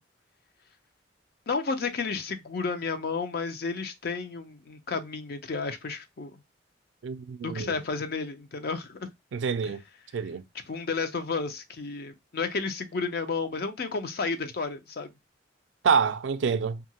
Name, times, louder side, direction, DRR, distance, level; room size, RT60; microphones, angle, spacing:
voice 1, 1.5-6.3 7.4-9.1 10.7-15.1, left 4 dB, 55° left, 0.5 m, -32 dB
voice 2, 7.0-7.8 9.3-9.8 10.1-10.4 15.8-16.8, right 6 dB, 75° right, 0.4 m, -27 dB
2.7 x 2.5 x 2.8 m
head